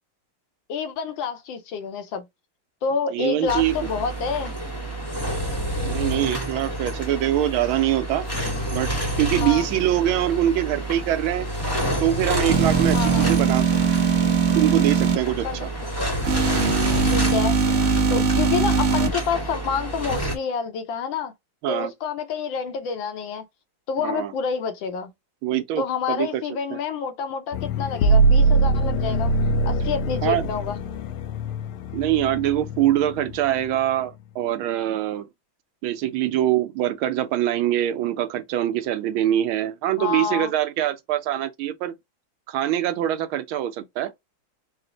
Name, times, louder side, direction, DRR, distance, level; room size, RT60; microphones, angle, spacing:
voice 1, 0.7-2.2 2.8-4.5 9.4-9.7 12.9-13.2 15.4-15.7 17.0-17.6 18.1-21.3 21.7-23.4 23.9-25.1 25.8-29.3 29.6-30.8 40.0-40.5, left 6 dB, 70° left, 1.4 m, -28 dB
voice 2, 3.1-3.7 5.8-8.2 8.7-8.9 9.2-11.5 12.0-13.6 14.6-15.7 21.6-21.9 24.0-24.3 25.4-26.4 30.2-30.5 31.9-35.3 35.8-41.9 42.5-44.1, right 12 dB, 80° right, 1.4 m, -23 dB
sound 1, 3.5-20.4, right 1 dB, 10° left, 0.8 m, -29 dB
sound 2, 12.5-15.2 16.2-19.1, right 5 dB, 60° right, 0.8 m, -21 dB
sound 3, 27.5-33.8, right 2 dB, 90° left, 1.5 m, -22 dB
4.9 x 2.0 x 3.8 m
omnidirectional pair, 2.3 m